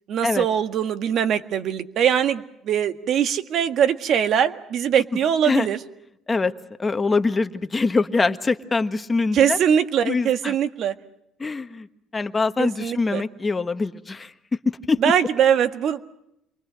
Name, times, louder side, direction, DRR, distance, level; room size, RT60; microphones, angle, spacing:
voice 1, 0.1-5.8 9.3-10.9 12.6-13.2 15.0-16.0, right 8 dB, 60° right, 9 dB, 1.7 m, -22 dB
voice 2, 6.8-9.6 10.0-10.5 11.4-11.9 12.1-14.3 14.6-15.1, left 3 dB, 20° left, 9 dB, 1.4 m, -23 dB
29.0 x 24.0 x 6.4 m, 0.82 s
cardioid pair, 115°, 0 cm